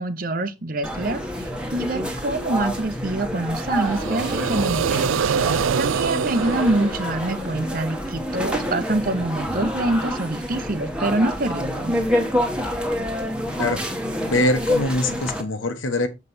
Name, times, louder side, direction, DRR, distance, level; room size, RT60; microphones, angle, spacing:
voice 1, 0.0-5.2 5.8-12.0, right 2 dB, 45° right, 0.9 m, -25 dB
sound 1, 0.8-15.4, equal, 5° right, 1.2 m, -27 dB
sound 2, 3.7-7.7, right 6 dB, 85° right, 0.4 m, -25 dB
voice 2, 14.2-16.1, left 1 dB, 75° left, 1.4 m, -23 dB
7.3 x 5.5 x 4.3 m
head